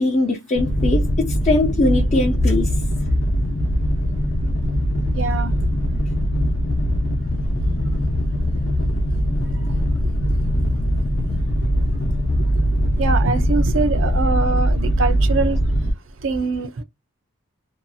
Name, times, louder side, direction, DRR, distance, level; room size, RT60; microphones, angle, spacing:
voice 1, 0.0-2.8, left 2 dB, 35° left, 0.4 m, -20 dB
sound 1, 0.5-15.9, equal, 75° left, 0.8 m, -21 dB
voice 2, 5.1-5.5 9.4-9.7 10.3-10.7 11.2-11.4 12.5-12.6 13.0-15.6 16.2-16.8, right 4 dB, 70° right, 0.5 m, -24 dB
2.7 x 2.3 x 2.6 m
head